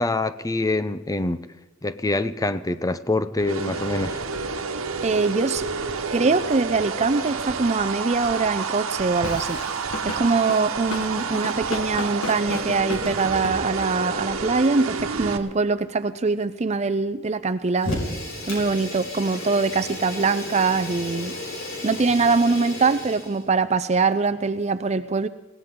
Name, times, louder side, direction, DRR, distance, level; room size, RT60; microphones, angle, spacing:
voice 1, 0.0-1.5 1.8-4.2, left 2 dB, 15° left, 0.6 m, -25 dB
sound 1, 3.4-15.4, right 5 dB, 70° right, 1.3 m, -29 dB
voice 2, 5.0-5.6 6.1-9.6 10.0-18.0 18.5-21.3 21.8-25.3, right 4 dB, 30° right, 0.5 m, -23 dB
Drum kit / Drum, 9.2-14.0, left 2 dB, 85° left, 1.7 m, -34 dB
Fire, 17.8-23.4, left 1 dB, 70° left, 5.5 m, -33 dB
21.0 x 18.0 x 3.8 m
head